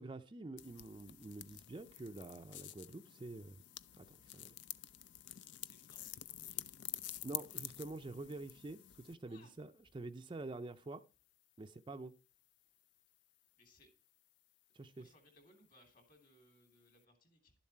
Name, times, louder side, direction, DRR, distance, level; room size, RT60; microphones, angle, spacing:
voice 1, 0.0-3.6 4.0-4.5 7.2-11.0 11.6-12.1 14.7-15.1, right 2 dB, 25° right, 0.4 m, -47 dB
sound 1, 0.6-9.2, left 13 dB, 65° left, 0.4 m, -49 dB
voice 2, 5.6-6.8 9.2-9.5 13.6-13.9 14.7-17.5, left 1 dB, 45° left, 3.2 m, -67 dB
12.0 x 7.3 x 4.4 m
head